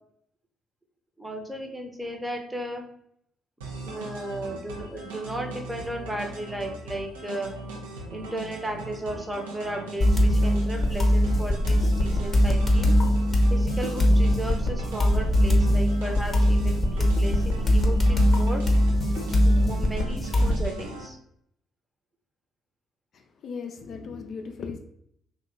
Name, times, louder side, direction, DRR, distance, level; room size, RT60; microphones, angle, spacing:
voice 1, 1.2-2.8 3.8-7.5 8.1-12.9 13.5-18.6 19.4-21.2, right 1 dB, 10° right, 2 dB, 0.8 m, -35 dB
sound 1, 3.6-21.1, right 2 dB, 85° right, 0.5 m, -40 dB
sound 2, 10.0-20.7, equal, 25° left, 0.8 m, -21 dB
voice 2, 23.1-24.8, left 5 dB, 55° left, 4 dB, 0.3 m, -37 dB
2.8 x 2.2 x 3.6 m, 0.70 s
hypercardioid pair, 45°, 0 cm